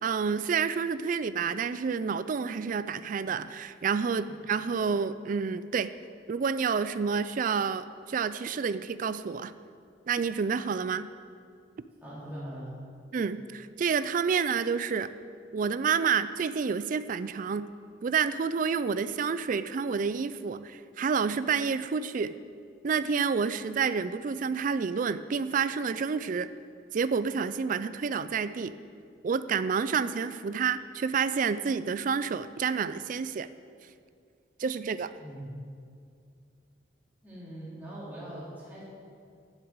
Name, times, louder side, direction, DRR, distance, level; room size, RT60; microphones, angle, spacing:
voice 1, 0.0-5.9 6.3-9.5 10.1-11.1 13.1-15.1 15.5-17.7 18.0-22.4 22.8-26.5 26.9-28.7 29.2-33.5 34.6-35.1, right 6 dB, 45° right, 14 dB, 0.3 m, -29 dB
voice 2, 12.0-12.7 35.2-35.4 37.2-38.8, right 1 dB, 10° right, -9 dB, 2.8 m, -41 dB
7.7 x 7.4 x 8.1 m, 2.3 s
head